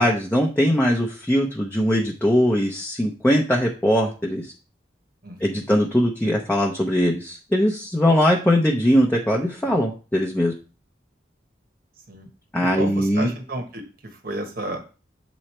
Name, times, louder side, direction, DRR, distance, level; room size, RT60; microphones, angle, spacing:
voice 1, 0.0-4.5 5.4-10.5 12.5-13.3, equal, 10° left, -2 dB, 0.7 m, -21 dB
voice 2, 5.2-5.7 9.6-9.8 12.1-12.3 12.8-14.8, right 1 dB, 55° right, 5 dB, 1.2 m, -32 dB
7.7 x 3.1 x 4.3 m, 0.34 s
head